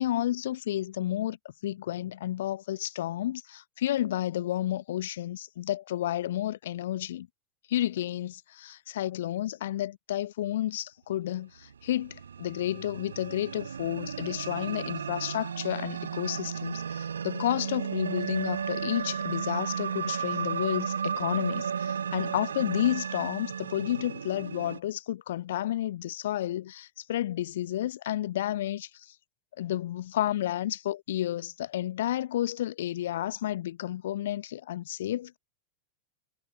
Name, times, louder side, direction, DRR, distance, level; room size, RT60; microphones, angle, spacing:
voice 1, 0.0-1.4 1.6-7.3 7.7-29.1 29.6-35.4, left 13 dB, 60° left, 0.9 m, -31 dB
sound 1, 11.7-24.8, right 7 dB, 70° right, 1.8 m, -34 dB
figure-of-eight pair, 90°, 0 cm